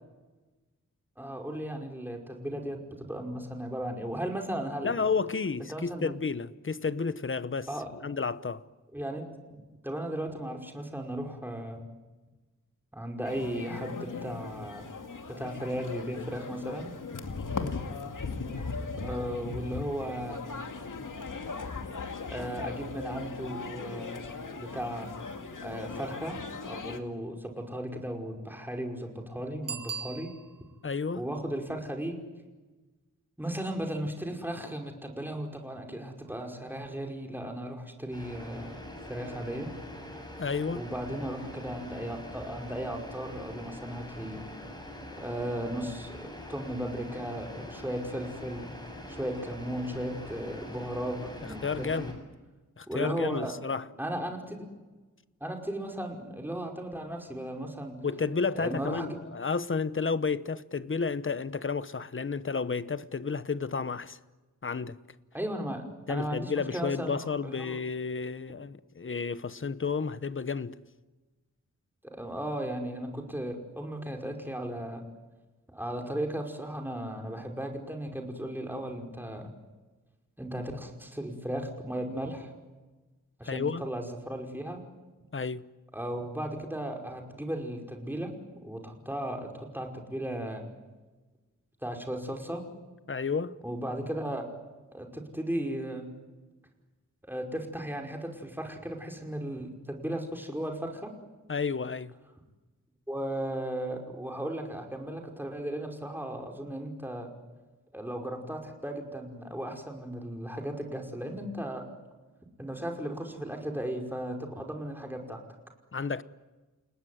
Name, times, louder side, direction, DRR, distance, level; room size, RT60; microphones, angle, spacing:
voice 1, 1.2-5.0 5.7-6.1 7.7-7.9 8.9-11.8 12.9-14.9 15.4-16.9 19.0-20.4 22.3-24.2 24.6-25.1 25.6-26.4 26.6-30.3 31.1-32.2 33.4-38.7 39.1-39.7 40.7-44.4 45.1-48.7 49.1-52.1 52.9-53.5 54.0-54.7 55.4-58.0 58.6-59.2 65.3-67.8 72.0-75.0 75.7-79.5 80.4-82.5 83.4-84.8 85.9-88.3 88.6-90.6 91.8-92.6 93.6-94.4 94.9-96.1 97.2-101.1 103.1-107.3 107.9-111.8 112.6-115.4, right 1 dB, 5° right, 5.2 m, -36 dB
voice 2, 4.8-7.7 8.0-8.6 17.5-17.8 30.8-31.2 40.4-40.8 51.4-52.2 52.8-53.8 58.0-64.2 64.6-65.0 66.1-70.8 83.4-83.8 85.3-85.7 93.1-93.5 101.5-102.1 115.9-116.2, left 5 dB, 40° left, 1.0 m, -31 dB
sound 1, 13.2-27.0, left 4 dB, 70° left, 2.5 m, -38 dB
Bicycle bell, 29.6-30.8 36.3-36.4, right 6 dB, 75° right, 1.2 m, -39 dB
sound 2, 38.1-52.1, left 1 dB, 15° left, 7.5 m, -44 dB
29.5 x 19.0 x 9.5 m
wide cardioid pair, 100°, 33 cm